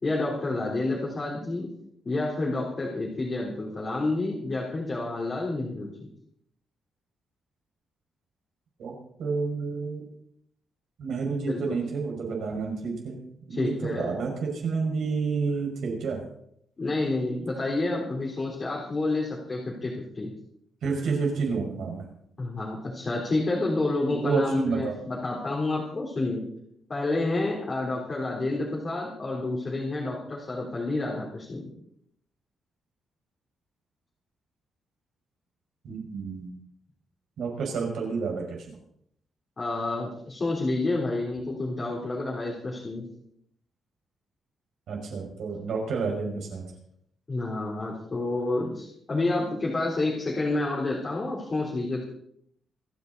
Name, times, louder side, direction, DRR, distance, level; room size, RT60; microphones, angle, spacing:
voice 1, 0.0-1.7 2.1-6.1 11.5-11.7 13.5-14.2 16.8-20.3 22.4-26.5 26.9-31.7 39.6-43.1 47.3-52.1, left 2 dB, 25° left, -5 dB, 3.7 m, -29 dB
voice 2, 8.8-10.0 11.0-13.2 13.5-16.2 20.8-22.1 24.1-24.9 35.8-36.5 37.4-38.6 44.9-46.6, right 4 dB, 65° right, 0 dB, 5.6 m, -29 dB
26.5 x 10.5 x 4.1 m, 0.70 s
wide cardioid pair, 170°, 0 cm